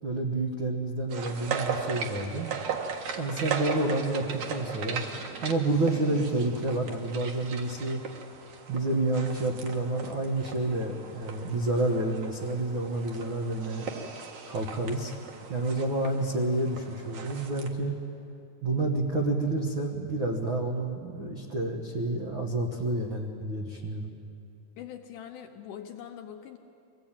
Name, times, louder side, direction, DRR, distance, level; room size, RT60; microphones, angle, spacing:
voice 1, 0.0-2.5 3.1-5.0 5.4-8.0 8.7-13.8 14.5-15.1 15.5-17.9 18.6-24.1, right 2 dB, 90° right, 1 dB, 1.1 m, -29 dB
sound 1, 1.1-17.7, right 6 dB, 55° right, 2.4 m, -38 dB
voice 2, 24.8-26.6, left 9 dB, 75° left, 4 dB, 2.0 m, -43 dB
23.5 x 16.5 x 8.9 m, 2.7 s
omnidirectional pair, 4.5 m